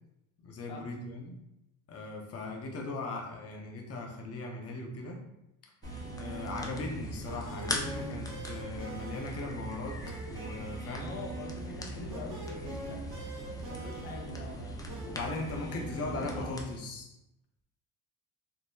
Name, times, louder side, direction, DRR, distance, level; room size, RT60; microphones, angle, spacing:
voice 1, 0.4-1.4 1.9-5.2 6.1-11.1 15.0-17.2, left 3 dB, 35° left, 1 dB, 0.7 m, -39 dB
sound 1, 5.8-16.8, left 2 dB, 10° left, 0.3 m, -43 dB
sound 2, 5.8-16.6, right 3 dB, 40° right, 0.9 m, -41 dB
voice 2, 11.0-13.0 13.3-15.8 16.2-16.5, left 3 dB, 90° left, 1 dB, 0.7 m, -45 dB
3.7 x 2.0 x 2.6 m, 0.89 s
cardioid pair, 95°, 42 cm